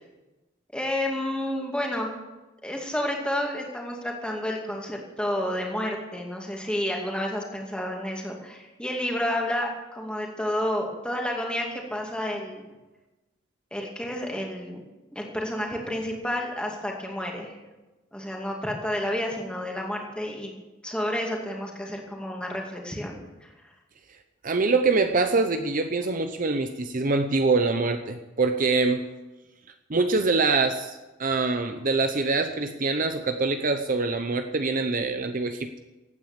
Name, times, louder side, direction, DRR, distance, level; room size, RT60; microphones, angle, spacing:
voice 1, 0.7-2.1 2.6-12.7 13.7-14.8 15.1-17.5 18.1-20.5 20.8-23.5, left 1 dB, 5° left, 0 dB, 2.3 m, -30 dB
voice 2, 24.4-29.1 29.9-35.7, right 3 dB, 45° right, 8 dB, 0.7 m, -24 dB
16.0 x 9.2 x 7.3 m, 1.1 s
head